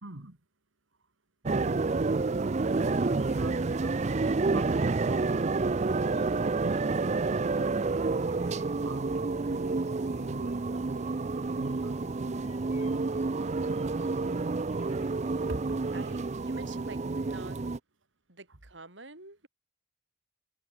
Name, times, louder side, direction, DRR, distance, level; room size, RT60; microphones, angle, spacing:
voice 1, 0.0-0.4 3.4-5.6 6.0-11.2 11.5-13.6 15.5-15.8 18.5-18.6, right 2 dB, 85° right, 2.4 m, -45 dB
sound 1, 1.5-17.8, right 3 dB, 35° right, 0.5 m, -29 dB
sound 2, 3.1-17.0, left 6 dB, 35° left, 4.5 m, -64 dB
voice 2, 15.9-17.6 18.3-19.5, right 3 dB, 70° right, 5.7 m, -47 dB
head